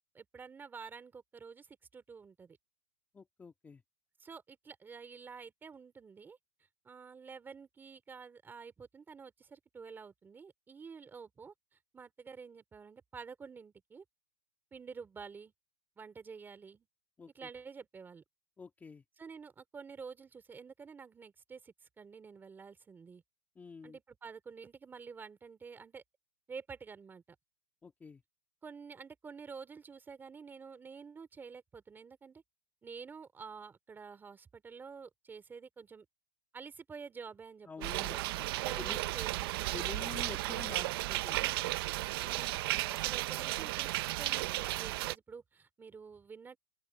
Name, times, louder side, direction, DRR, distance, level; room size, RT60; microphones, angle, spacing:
voice 1, 0.1-2.6 4.2-6.4 6.8-11.5 11.9-14.0 14.7-15.5 16.0-16.9 17.3-18.2 19.2-23.2 23.8-26.0 26.5-27.2 28.6-32.4 32.8-36.0 36.5-38.2 38.6-39.8 42.2-43.9 44.2-46.6, right 5 dB, 10° right, 2.9 m, -49 dB
voice 2, 3.1-3.8 17.2-17.5 18.6-19.0 23.6-24.0 27.8-28.2 37.7-38.5 38.8-39.0 39.7-41.6, left 4 dB, 10° left, 2.3 m, -47 dB
sound 1, 37.8-45.2, right 18 dB, 40° right, 0.6 m, -34 dB
open air
hypercardioid pair, 160°, 18 cm